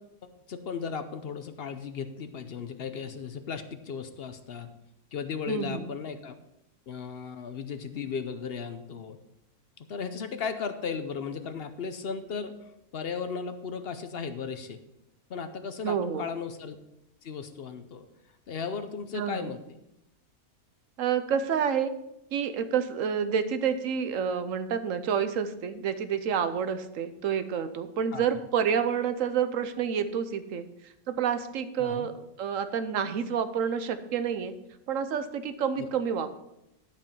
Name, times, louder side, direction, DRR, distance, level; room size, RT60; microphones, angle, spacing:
voice 1, 0.5-4.7 5.1-6.4 6.9-9.2 9.8-12.5 12.9-14.8 15.3-16.8 17.2-18.1 18.5-19.8 28.1-28.2 31.8-32.1 35.8-35.9, left 6 dB, 55° left, 9 dB, 0.7 m, -36 dB
voice 2, 5.5-5.9 15.8-16.3 19.1-19.5 21.0-21.9 22.3-30.7 31.1-34.5 34.9-36.4, right 7 dB, 65° right, 11 dB, 1.1 m, -29 dB
11.5 x 5.3 x 5.4 m, 0.85 s
omnidirectional pair, 1.6 m